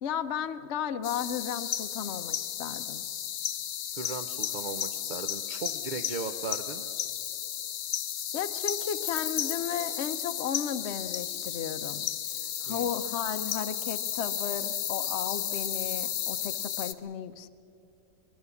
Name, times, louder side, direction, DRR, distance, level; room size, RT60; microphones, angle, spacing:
voice 1, 0.0-3.0 8.3-12.1 12.6-17.5, left 8 dB, 55° left, 8 dB, 0.8 m, -34 dB
sound 1, 1.0-16.9, left 10 dB, 80° left, 1.4 m, -33 dB
voice 2, 3.9-6.8 12.7-12.9, right 4 dB, 60° right, 6 dB, 0.4 m, -37 dB
23.0 x 21.0 x 7.0 m, 2.7 s
omnidirectional pair, 1.7 m